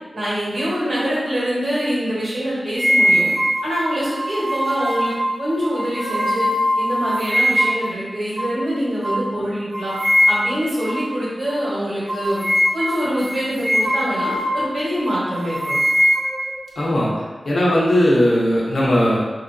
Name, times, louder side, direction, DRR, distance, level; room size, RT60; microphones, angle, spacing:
voice 1, 0.1-3.3 3.6-5.1 5.4-6.5 6.8-9.9 10.3-12.4 12.7-15.8, equal, 75° right, -8 dB, 1.5 m, -24 dB
sound 1, 2.8-7.9 8.4-8.6 9.0-9.2 9.7-10.6 10.9-11.1 11.5-11.6 12.1-14.7 15.1-16.9, equal, 20° right, 0.6 m, -21 dB
voice 2, 16.8-17.1 17.4-19.2, equal, 80° left, -6 dB, 0.8 m, -17 dB
3.0 x 2.8 x 2.6 m, 1.3 s
wide cardioid pair, 100°, 0 cm